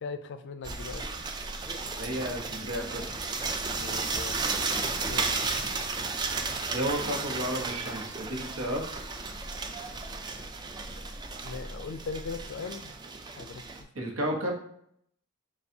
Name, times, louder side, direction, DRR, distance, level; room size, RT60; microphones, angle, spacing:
voice 1, 0.0-1.0 3.8-4.5 5.0-5.3 11.4-13.0 13.4-13.9, left 4 dB, 60° left, 10 dB, 0.4 m, -39 dB
sound 1, 0.6-13.8, right 4 dB, 20° right, 0.3 m, -34 dB
sound 2, 1.6-12.5, equal, 20° left, 0.8 m, -47 dB
voice 2, 2.0-3.2 6.7-8.8 13.9-14.6, equal, 75° right, 1 dB, 1.0 m, -32 dB
6.8 x 2.3 x 2.7 m, 0.69 s
head